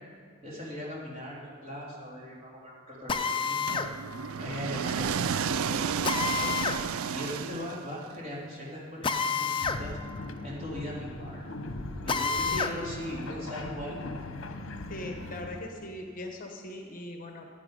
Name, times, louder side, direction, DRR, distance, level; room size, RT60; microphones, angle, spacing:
voice 1, 0.4-6.5 7.1-10.0 10.4-11.5 12.0-14.0, left 1 dB, 30° right, -6 dB, 3.3 m, -39 dB
Drill, 3.1-3.9 6.0-6.8 9.0-9.8 10.2-10.3 12.1-12.8, left 5 dB, 25° left, 0.5 m, -29 dB
sound 1, 3.7-8.1, right 7 dB, 80° right, 0.4 m, -32 dB
sound 2, 9.6-15.9, left 2 dB, 65° left, 0.9 m, -40 dB
voice 2, 14.9-17.5, left 1 dB, 40° left, 3 dB, 1.1 m, -40 dB
15.5 x 9.7 x 5.2 m, 2.3 s
head